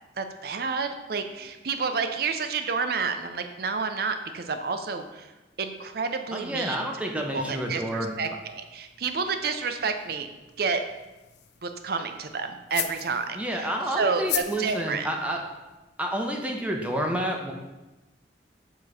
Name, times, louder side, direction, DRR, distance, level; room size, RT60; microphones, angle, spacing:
voice 1, 0.2-5.3 5.6-6.9 7.1-10.3 10.6-10.8 11.6-15.1, right 5 dB, 55° right, 7 dB, 0.5 m, -30 dB
voice 2, 6.3-8.1 13.3-15.4 16.0-17.5, right 1 dB, 5° right, 1 dB, 0.6 m, -29 dB
sound 1, 7.9-15.8, left 12 dB, 65° left, 0.4 m, -40 dB
7.0 x 3.0 x 4.8 m, 1.1 s
head